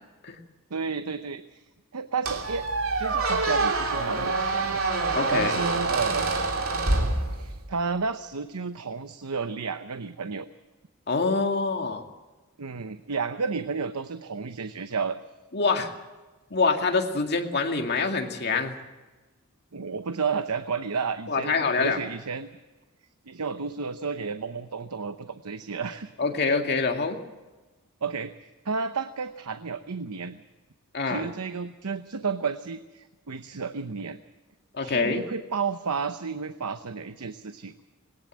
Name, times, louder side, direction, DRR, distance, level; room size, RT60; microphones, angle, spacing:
voice 1, 0.7-1.6 1.9-2.7 3.0-4.8 5.3-6.4 7.1-10.5 12.6-15.2 19.7-22.5 23.3-26.1 28.0-30.4 31.1-34.2 34.8-37.7, right 5 dB, 90° right, 10 dB, 0.8 m, -32 dB
Squeak, 2.3-7.8, right 3 dB, 65° right, 3.3 m, -26 dB
voice 2, 5.1-5.6 11.1-12.0 15.5-15.9 16.5-18.8 21.3-22.0 26.2-27.2 30.9-31.3 34.7-35.2, left 4 dB, 50° left, 4 dB, 2.2 m, -25 dB
20.5 x 18.0 x 7.5 m, 1.2 s
head